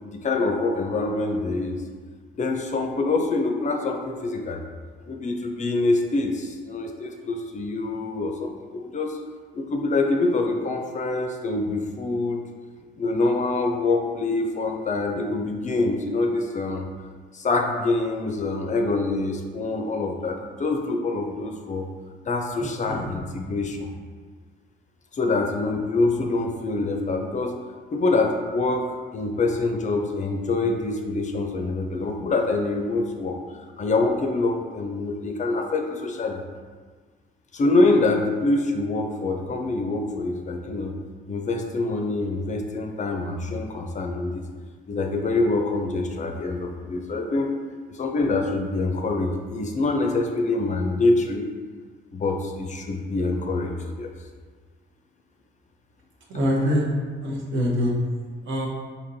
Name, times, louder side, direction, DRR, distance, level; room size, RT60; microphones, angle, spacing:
voice 1, 0.0-1.8 2.3-4.6 5.1-9.2 9.5-12.5 13.0-16.9 17.3-21.9 22.3-23.9 25.1-27.6 27.9-33.4 33.8-36.4 37.5-40.9 41.3-44.4 44.9-47.5 47.9-51.5 52.1-54.1, left 3 dB, 40° left, 3 dB, 0.5 m, -25 dB
voice 2, 22.6-23.0 56.3-56.8 57.2-57.9 58.5-58.7, equal, 70° right, -3 dB, 0.9 m, -24 dB
4.3 x 2.9 x 2.7 m, 1.5 s
cardioid pair, 90°, 20 cm